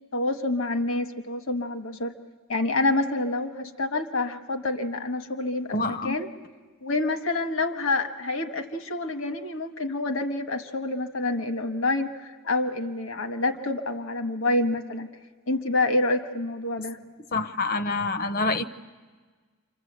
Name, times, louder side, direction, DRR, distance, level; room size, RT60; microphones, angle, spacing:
voice 1, 0.1-2.1 2.5-6.3 6.8-15.1 15.5-17.0, left 2 dB, 60° left, 8 dB, 1.3 m, -27 dB
voice 2, 5.7-6.1 17.3-18.6, left 3 dB, 40° left, 11 dB, 0.8 m, -26 dB
28.0 x 25.0 x 8.0 m, 1.4 s
head